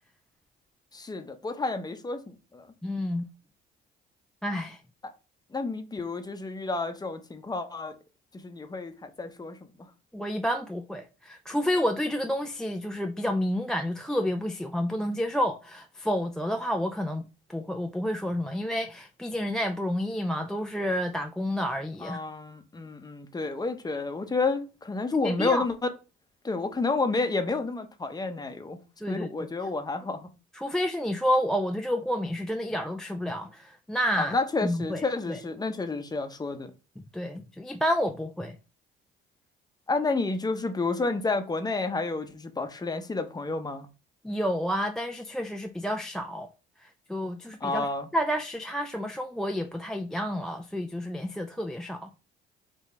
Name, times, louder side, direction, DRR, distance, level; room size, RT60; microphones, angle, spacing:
voice 1, 0.9-2.7 5.0-5.1 5.5-8.0 8.3-9.6 22.0-25.9 26.4-28.8 29.1-30.3 34.2-36.7 39.9-43.9 47.6-48.1, left 3 dB, 20° left, 0.8 m, -30 dB
voice 2, 2.8-3.3 4.4-4.8 10.1-22.2 25.2-25.6 29.0-29.3 30.5-34.4 34.6-35.4 37.1-38.6 44.2-46.5 47.1-47.9 48.1-52.1, equal, 5° left, 0.4 m, -30 dB
3.9 x 2.9 x 4.2 m
cardioid pair, 90°, 21 cm